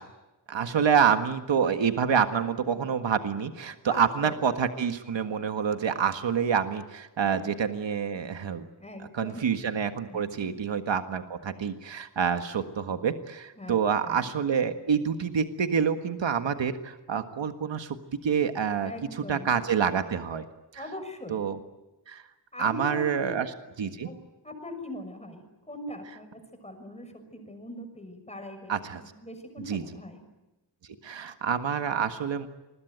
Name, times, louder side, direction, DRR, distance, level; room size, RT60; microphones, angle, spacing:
voice 1, 0.5-8.7 9.1-18.0 18.2-20.4 20.7-20.8 21.3-21.6 22.1-22.2 22.6-24.1 28.7-29.0 29.7-29.8 31.0-32.5, right 7 dB, 85° right, 7 dB, 1.7 m, -27 dB
voice 2, 3.9-4.4 7.2-7.4 8.8-9.4 10.1-10.2 13.6-14.3 18.8-19.5 20.7-21.6 22.5-23.3 24.0-24.2 24.4-30.3, left 1 dB, 15° left, 7 dB, 6.3 m, -41 dB
28.0 x 21.5 x 9.4 m, 1.0 s
wide cardioid pair, 120°, 44 cm